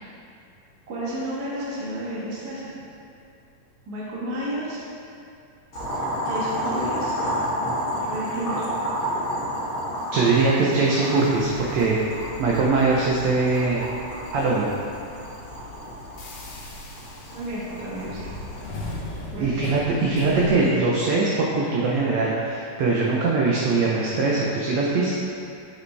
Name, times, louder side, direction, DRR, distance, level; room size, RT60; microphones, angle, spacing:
voice 1, 0.9-2.7 3.8-4.8 6.2-7.2 7.9-8.6 17.3-18.3 19.3-19.5, right 1 dB, 55° right, -7 dB, 1.0 m, -31 dB
Boiling, 5.7-19.0, equal, 45° left, 1.8 m, -31 dB
voice 2, 10.1-12.0 12.4-13.8 14.3-14.7 19.4-25.1, right 3 dB, 85° right, -4 dB, 1.5 m, -21 dB
sound 1, 11.4-20.7, left 2 dB, 75° left, 1.3 m, -39 dB
7.9 x 5.1 x 3.2 m, 2.6 s
omnidirectional pair, 3.9 m